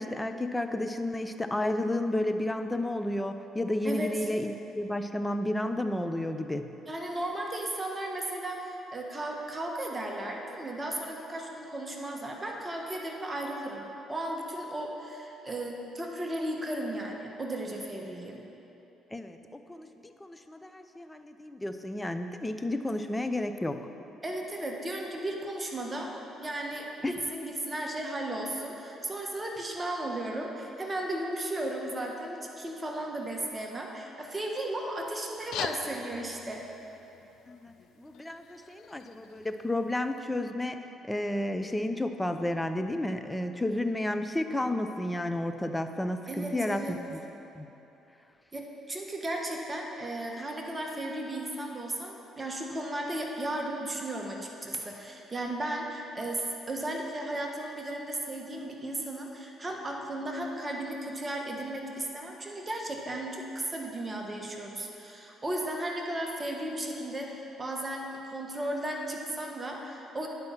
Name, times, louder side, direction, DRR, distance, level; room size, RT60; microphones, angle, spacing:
voice 1, 0.0-6.7 19.1-23.8 27.0-27.1 37.5-40.8 41.1-47.2 47.6-47.7, left 1 dB, 15° left, 8 dB, 0.6 m, -32 dB
voice 2, 6.9-18.4 24.2-26.1 26.4-36.6 46.3-47.0 48.5-70.3, right 1 dB, 25° right, 0 dB, 1.4 m, -35 dB
sound 1, 35.3-40.3, left 9 dB, 75° left, 0.3 m, -43 dB
9.6 x 5.5 x 7.4 m, 3.0 s
supercardioid pair, 70°, 0 cm